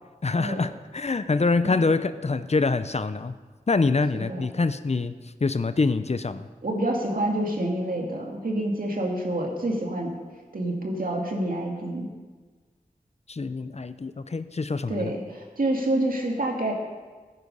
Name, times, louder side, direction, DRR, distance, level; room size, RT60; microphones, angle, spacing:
voice 1, 0.2-3.3 3.7-5.1 5.4-6.5 13.3-15.1, left 3 dB, 50° left, 12 dB, 0.6 m, -25 dB
voice 2, 4.1-4.4 6.6-10.1 10.5-12.1 14.9-16.7, right 1 dB, 80° right, 0 dB, 2.3 m, -27 dB
15.0 x 9.7 x 5.5 m, 1.4 s
wide cardioid pair, 65°, 15 cm